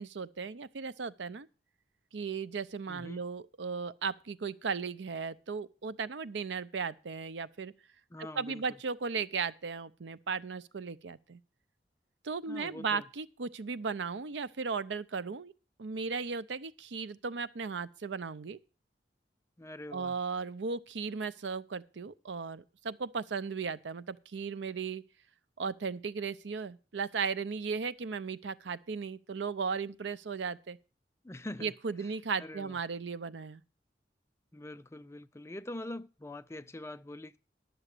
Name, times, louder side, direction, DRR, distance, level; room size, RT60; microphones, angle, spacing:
voice 1, 0.0-1.5 2.1-7.7 8.4-11.4 12.2-15.5 15.8-18.6 19.9-25.0 25.6-30.8 31.6-33.6, right 5 dB, 90° right, 0.6 m, -36 dB
voice 2, 2.9-3.2 8.1-8.6 12.5-13.1 19.6-20.2 31.2-32.1 32.4-32.8 34.5-37.4, left 1 dB, 15° left, 0.4 m, -44 dB
11.0 x 7.1 x 6.5 m
head